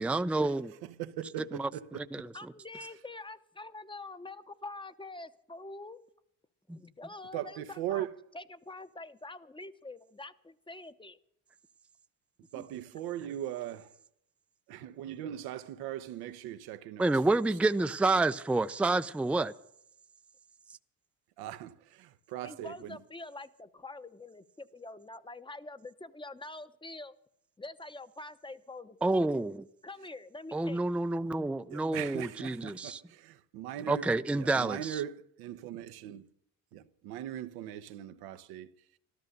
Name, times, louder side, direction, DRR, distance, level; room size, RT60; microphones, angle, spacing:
voice 1, 0.0-0.7 1.5-1.7 2.1-2.3 6.7-6.8 17.0-19.5 29.0-29.6 30.5-33.0 33.9-35.0, right 2 dB, 5° right, 0.5 m, -29 dB
voice 2, 0.8-2.3 7.3-8.2 12.5-13.9 14.7-17.4 21.4-23.0 31.7-34.1 34.3-36.3 36.7-38.7, right 11 dB, 80° right, 1.0 m, -40 dB
voice 3, 2.3-6.0 6.7-8.1 8.3-11.2 22.4-27.1 27.6-29.3 29.8-31.0, left 2 dB, 15° left, 0.9 m, -45 dB
13.5 x 13.0 x 6.6 m
supercardioid pair, 80°, 37 cm